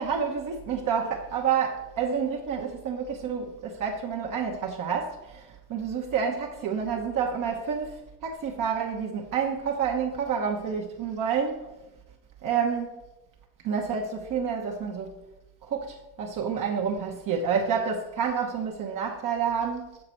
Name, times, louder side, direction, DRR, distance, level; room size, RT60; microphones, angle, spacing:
voice 1, 0.0-11.7 12.4-13.0 13.6-15.1 15.6-20.0, right 6 dB, 40° right, 1.1 m, -29 dB
6.8 x 6.8 x 4.3 m
supercardioid pair, 120°, 47 cm